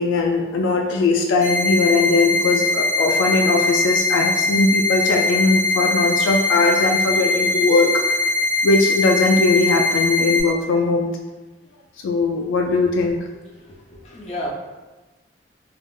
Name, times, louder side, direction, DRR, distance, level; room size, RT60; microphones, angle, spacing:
voice 1, 0.0-8.2 8.6-11.1 12.0-13.2, left 3 dB, 90° left, 2 dB, 0.3 m, -19 dB
sound 1, 1.4-10.4, left 2 dB, 75° right, 1.0 m, -21 dB
voice 2, 13.3-13.8 14.0-14.5, left 1 dB, 35° left, -5 dB, 0.6 m, -33 dB
2.4 x 2.0 x 3.5 m, 1.2 s
head